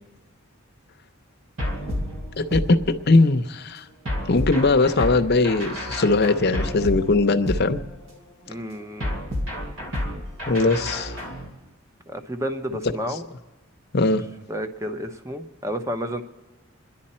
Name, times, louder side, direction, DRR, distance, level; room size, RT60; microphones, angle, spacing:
sound 1, 1.6-3.3 4.1-8.2 9.0-11.5, left 1 dB, 65° right, 2.3 m, -30 dB
voice 1, 2.4-3.8 4.3-7.8 10.5-11.2 12.7-12.8 13.9-14.2, left 3 dB, 50° left, 7 dB, 0.7 m, -20 dB
voice 2, 8.5-9.1 12.1-13.3 14.5-16.2, equal, 15° right, 7 dB, 0.8 m, -31 dB
27.0 x 11.0 x 4.3 m, 1.2 s
head